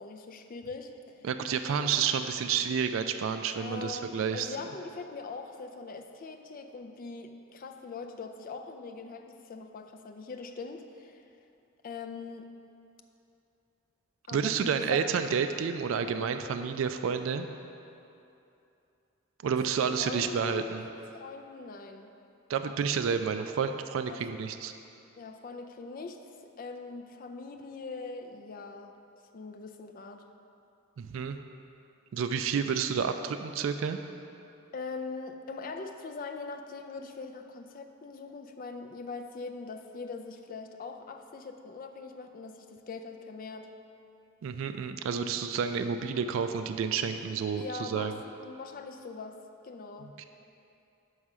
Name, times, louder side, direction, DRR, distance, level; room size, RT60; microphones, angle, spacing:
voice 1, 0.0-1.3 3.5-11.2 11.8-12.5 14.3-15.0 19.8-20.8 21.1-22.1 24.1-24.3 25.2-26.2 26.6-28.9 29.3-30.2 34.7-43.7 47.5-49.4 49.6-50.1, left 4 dB, 45° left, 6 dB, 0.4 m, -42 dB
voice 2, 1.2-4.5 14.3-17.5 19.4-20.8 22.5-24.7 31.0-31.4 32.1-34.0 44.4-48.1 50.2-50.3, right 6 dB, 70° right, 8 dB, 0.3 m, -30 dB
5.5 x 4.9 x 6.0 m, 2.7 s
head